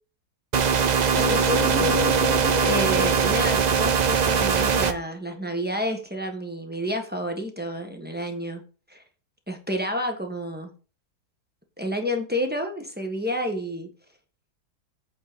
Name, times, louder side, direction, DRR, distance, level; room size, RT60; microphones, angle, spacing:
sound 1, 0.5-4.9, right 6 dB, 55° right, 0.4 m, -21 dB
sound 2, 1.2-4.8, left 3 dB, 60° left, 1.7 m, -30 dB
voice 1, 1.2-1.9 2.6-8.6 8.9-9.0 9.5-10.7 11.8-13.9, equal, 5° right, 3 dB, 1.3 m, -30 dB
8.6 x 4.4 x 6.7 m, 0.37 s
omnidirectional pair, 1.6 m